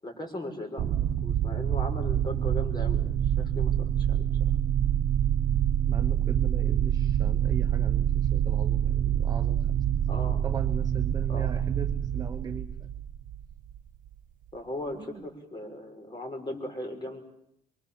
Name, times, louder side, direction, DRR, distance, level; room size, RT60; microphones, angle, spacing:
voice 1, 0.0-4.3 10.1-10.5 11.3-11.5 14.5-17.2, left 1 dB, 25° left, 3 dB, 6.3 m, -38 dB
sound 1, 0.8-13.8, right 10 dB, 50° right, 1.1 m, -26 dB
voice 2, 5.9-9.8 10.4-13.0 14.9-15.2, right 4 dB, 20° right, 6 dB, 1.4 m, -40 dB
25.5 x 24.5 x 7.4 m, 0.75 s
cardioid pair, 110°, 17 cm